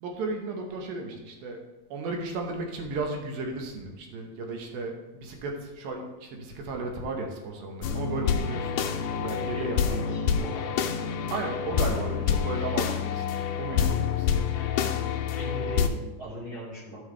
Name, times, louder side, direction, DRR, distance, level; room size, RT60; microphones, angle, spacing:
voice 1, 0.0-1.6 1.9-8.8 9.2-10.2 11.3-13.2 13.6-14.5, right 3 dB, 85° right, 2 dB, 3.0 m, -34 dB
sound 1, 7.8-15.9, left 7 dB, 90° left, 1.5 m, -27 dB
voice 2, 9.5-10.8 15.4-17.0, equal, 45° right, -7 dB, 2.4 m, -39 dB
13.0 x 5.6 x 3.3 m, 1.1 s
omnidirectional pair, 4.0 m